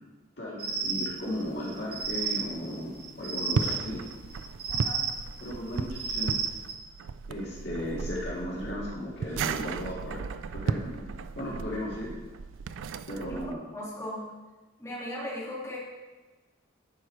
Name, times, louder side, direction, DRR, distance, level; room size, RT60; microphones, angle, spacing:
voice 1, 0.4-4.0 5.4-6.5 7.3-10.2 10.5-12.2 13.1-13.6, left 1 dB, 55° left, -6 dB, 2.1 m, -36 dB
sound 1, 0.6-6.8, right 5 dB, 50° right, 1.1 m, -33 dB
sound 2, 3.4-13.5, right 5 dB, 75° right, 0.3 m, -35 dB
voice 2, 4.7-5.0 13.3-13.4 13.7-14.3 14.8-15.8, left 1 dB, 15° left, -8 dB, 2.5 m, -37 dB
11.0 x 5.0 x 4.6 m, 1.2 s
head